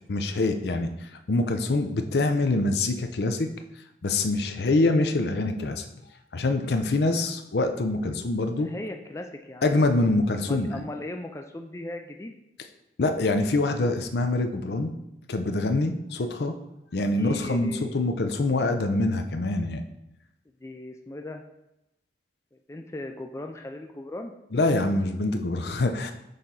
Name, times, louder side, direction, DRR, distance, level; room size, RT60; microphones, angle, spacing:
voice 1, 0.1-3.5 4.0-5.8 6.3-8.7 9.6-10.8 13.0-14.9 15.3-16.5 16.9-19.8 24.5-26.1, left 2 dB, 70° left, 7 dB, 0.6 m, -25 dB
voice 2, 8.6-9.8 10.5-12.4 17.2-18.1 20.5-21.4 22.5-24.3, left 1 dB, 15° left, 4 dB, 0.4 m, -38 dB
6.6 x 4.2 x 3.9 m, 0.89 s
head